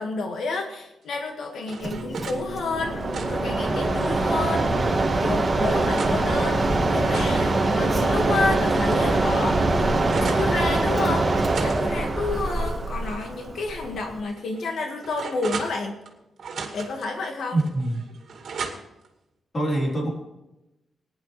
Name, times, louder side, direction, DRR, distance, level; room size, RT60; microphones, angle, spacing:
voice 1, 0.0-6.7 6.9-9.6 10.2-15.9 16.7-17.6, left 3 dB, 80° left, 3 dB, 1.8 m, -30 dB
sound 1, 1.1-2.4 2.9-4.5 5.1-6.2 6.8-8.5 8.9-9.0 9.3-10.5 11.4-13.2 13.6-13.7 14.3-16.1 16.4-17.1 17.6-19.1, right 5 dB, 60° right, 2.2 m, -38 dB
Mechanisms, 1.8-14.2, right 2 dB, 25° right, 1.6 m, -23 dB
voice 2, 17.5-18.0 19.5-20.1, right 1 dB, 30° left, -1 dB, 3.9 m, -24 dB
20.0 x 10.5 x 3.3 m, 0.94 s
wide cardioid pair, 155°, 0 cm